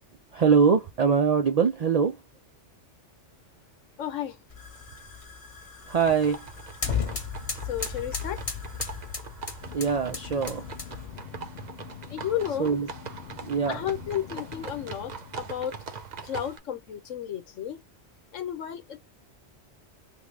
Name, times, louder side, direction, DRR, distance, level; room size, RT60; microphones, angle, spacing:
voice 1, 0.3-2.2 5.9-6.4 9.7-10.7 12.6-12.9 13.4-13.8, right 6 dB, 80° right, 0.3 m, -23 dB
voice 2, 4.0-4.4 7.6-8.4 12.1-12.7 13.7-15.8 16.2-17.8 18.3-19.0, left 10 dB, 90° left, 1.2 m, -33 dB
sound 1, 4.5-11.2, left 5 dB, 30° left, 1.0 m, -35 dB
sound 2, 5.9-16.6, right 5 dB, 45° right, 0.6 m, -42 dB
sound 3, 9.6-15.9, left 10 dB, 60° left, 0.6 m, -46 dB
3.6 x 2.3 x 3.2 m
omnidirectional pair, 1.3 m